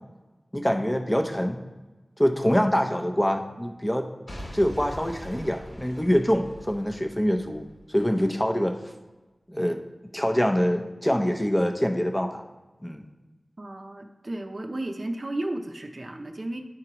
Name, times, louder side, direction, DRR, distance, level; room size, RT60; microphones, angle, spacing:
voice 1, 0.5-1.6 2.2-4.1 4.5-7.6 7.9-8.8 9.5-9.8 10.1-12.4 12.8-13.0, equal, 15° left, 5 dB, 0.7 m, -24 dB
Boom / Shatter / Crushing, 4.3-8.3 8.8-8.9, equal, 75° left, 1.9 m, -42 dB
voice 2, 13.6-16.6, right 1 dB, 50° right, 4 dB, 0.6 m, -33 dB
9.8 x 4.6 x 2.9 m, 1.2 s
wide cardioid pair, 60°, 0 cm